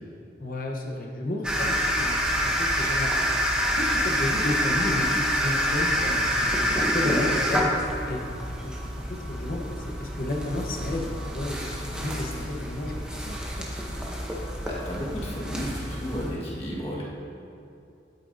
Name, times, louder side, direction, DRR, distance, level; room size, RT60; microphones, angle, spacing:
voice 1, 0.4-3.3 3.7-7.7 8.1-8.2 8.6-8.8 9.1-13.4 13.9-14.0, left 1 dB, 50° left, 0 dB, 1.0 m, -32 dB
sound 1, 1.4-16.3, equal, 5° right, 0.8 m, -27 dB
voice 2, 14.6-17.0, equal, 35° left, -6 dB, 1.6 m, -33 dB
12.0 x 8.2 x 2.7 m, 2.6 s
head